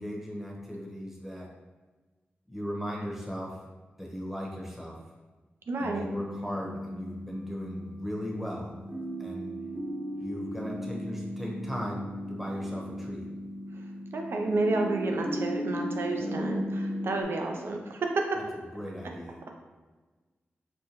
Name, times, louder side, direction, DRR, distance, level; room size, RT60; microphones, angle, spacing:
voice 1, 0.0-1.5 2.5-3.6 4.0-5.0 5.8-8.7 9.2-9.5 10.2-13.3 18.7-19.4, equal, 5° right, -2 dB, 0.9 m, -37 dB
voice 2, 5.7-6.1 14.1-18.2, right 2 dB, 70° right, 2 dB, 0.5 m, -30 dB
sound 1, 5.9-17.2, equal, 25° right, 0.8 m, -36 dB
5.1 x 2.2 x 2.9 m, 1.3 s
cardioid pair, 65°, 4 cm